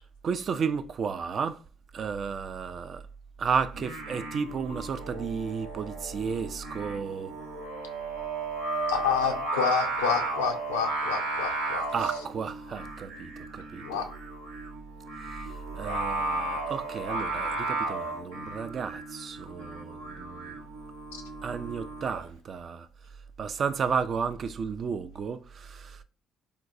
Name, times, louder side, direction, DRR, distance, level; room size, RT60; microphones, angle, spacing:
voice 1, 0.2-1.6 1.9-3.0 3.4-7.3 11.9-14.0 15.7-20.6 21.4-22.9 23.4-26.0, right 6 dB, 50° right, 0.3 m, -33 dB
Singing, 3.7-22.2, right 2 dB, 85° right, 0.7 m, -34 dB
voice 2, 8.9-11.9 13.8-14.1, left 7 dB, 85° left, 0.5 m, -28 dB
3.7 x 2.2 x 2.5 m
hypercardioid pair, 55°, 0 cm